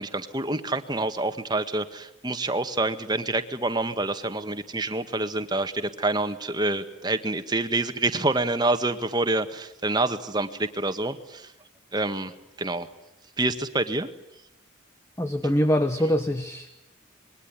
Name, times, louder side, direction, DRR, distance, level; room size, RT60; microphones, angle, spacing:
voice 1, 0.0-11.5 11.9-12.3 12.6-12.9 13.4-14.1, right 2 dB, 20° right, 8 dB, 1.8 m, -27 dB
voice 2, 15.2-16.7, equal, 15° left, 9 dB, 1.2 m, -24 dB
26.5 x 22.5 x 9.9 m, 0.85 s
head